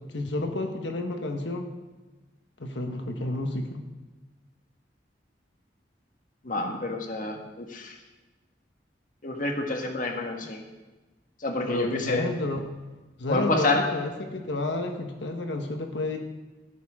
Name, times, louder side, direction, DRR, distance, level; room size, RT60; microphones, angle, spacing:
voice 1, 0.0-1.7 2.6-3.8 11.7-12.6 13.2-16.2, left 2 dB, 85° left, 4 dB, 1.3 m, -30 dB
voice 2, 6.4-7.9 9.2-10.6 11.4-12.2 13.3-13.9, left 2 dB, 50° left, 3 dB, 1.6 m, -28 dB
14.0 x 13.5 x 3.7 m, 1.2 s
head